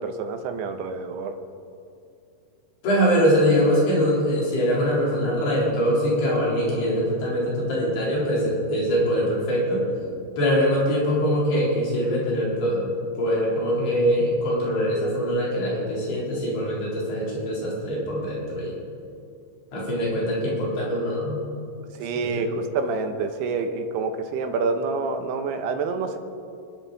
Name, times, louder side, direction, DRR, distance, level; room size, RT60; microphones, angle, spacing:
voice 1, 0.0-1.4 22.0-26.2, right 4 dB, 80° right, 6 dB, 3.1 m, -27 dB
voice 2, 2.8-10.1 10.4-18.7 19.7-21.4 22.1-22.6, equal, 75° left, -6 dB, 6.2 m, -23 dB
28.0 x 11.0 x 4.1 m, 2.4 s
omnidirectional pair, 4.7 m